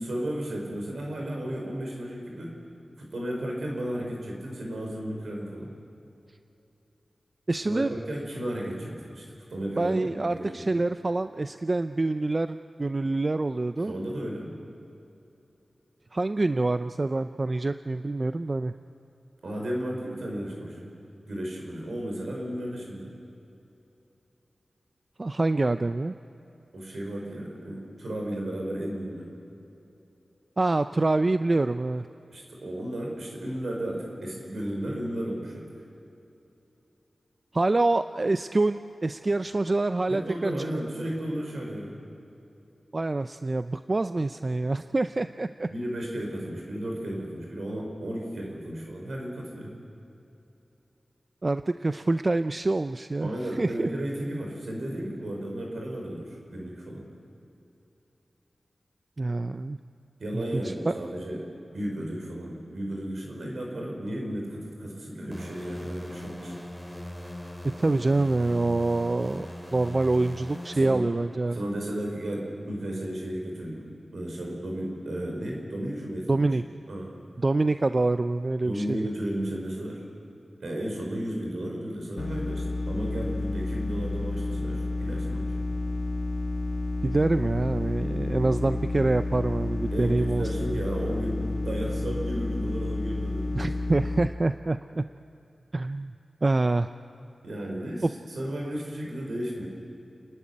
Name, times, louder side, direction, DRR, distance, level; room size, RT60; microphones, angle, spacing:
voice 1, 0.0-2.6 3.0-5.7 7.6-9.2 9.5-10.5 13.9-14.6 19.4-20.9 21.2-23.1 26.7-29.3 32.3-35.7 40.1-42.0 45.7-49.7 53.2-57.1 60.2-61.4 61.7-66.6 70.7-71.0 71.5-73.9 74.1-76.5 76.9-77.1 78.6-80.0 80.6-85.5 89.9-93.7 97.4-98.1 98.3-99.7, right 1 dB, 75° right, -1 dB, 5.6 m, -34 dB
voice 2, 7.5-8.0 9.8-13.9 16.1-18.7 25.2-26.1 30.6-32.1 37.5-40.5 42.9-45.7 51.4-53.9 59.2-59.8 60.3-60.9 67.8-69.5 69.7-71.6 76.3-76.6 77.4-79.0 87.0-90.8 93.6-95.0 95.7-96.1 96.4-96.9 98.0-98.1, right 2 dB, 40° right, 11 dB, 0.5 m, -26 dB
sound 1, 65.3-71.8, left 1 dB, ahead, 3.6 m, -40 dB
sound 2, 82.2-94.3, left 2 dB, 50° left, 1.7 m, -30 dB
29.5 x 11.0 x 10.0 m, 2.9 s
cardioid pair, 55°, 0 cm